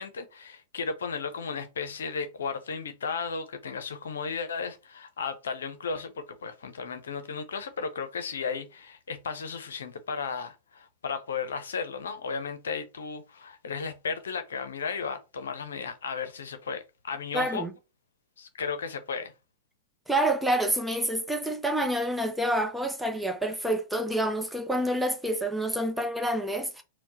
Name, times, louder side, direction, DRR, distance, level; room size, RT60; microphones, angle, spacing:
voice 1, 0.0-17.7 18.4-19.3, left 5 dB, 70° left, 0.7 m, -34 dB
voice 2, 17.3-17.7 20.1-26.8, right 1 dB, 5° right, 0.7 m, -28 dB
4.3 x 2.2 x 4.1 m
figure-of-eight pair, 100°, 0 cm